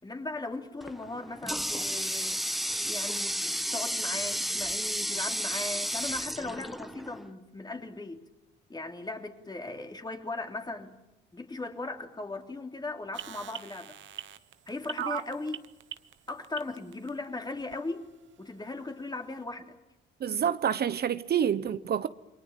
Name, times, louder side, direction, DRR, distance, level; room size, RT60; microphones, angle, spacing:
voice 1, 0.0-2.5 2.8-8.3 8.7-11.0 11.3-14.0 14.7-15.6 16.3-19.7, left 2 dB, 20° left, 3.3 m, -38 dB
Water tap faucet, 0.8-7.3, equal, ahead, 1.3 m, -32 dB
sound 1, 13.1-17.1 17.7-17.8, right 11 dB, 70° right, 1.3 m, -38 dB
voice 2, 20.2-22.1, right 8 dB, 55° right, 1.0 m, -27 dB
28.5 x 23.0 x 7.4 m
cardioid pair, 90°, 20 cm